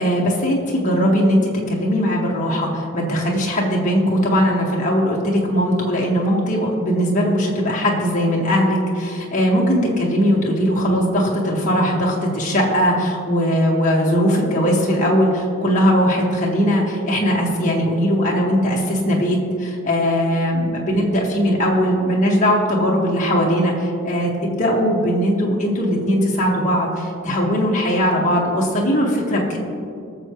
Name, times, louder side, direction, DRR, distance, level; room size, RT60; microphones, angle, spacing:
voice 1, 0.0-29.6, equal, 35° left, -3 dB, 1.8 m, -19 dB
20.5 x 7.0 x 3.1 m, 2.5 s
head